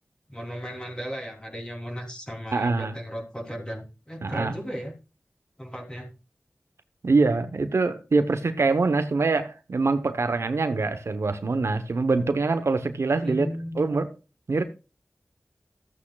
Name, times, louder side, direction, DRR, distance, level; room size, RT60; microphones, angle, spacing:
voice 1, 0.3-4.9 5.6-6.1 13.2-13.8, equal, 20° left, 3.4 m, -35 dB
voice 2, 2.5-3.0 4.2-4.5 7.0-13.5 13.7-14.1 14.5-14.6, right 3 dB, 75° right, 0.9 m, -24 dB
14.0 x 8.6 x 2.3 m
wide cardioid pair, 60°, 5 cm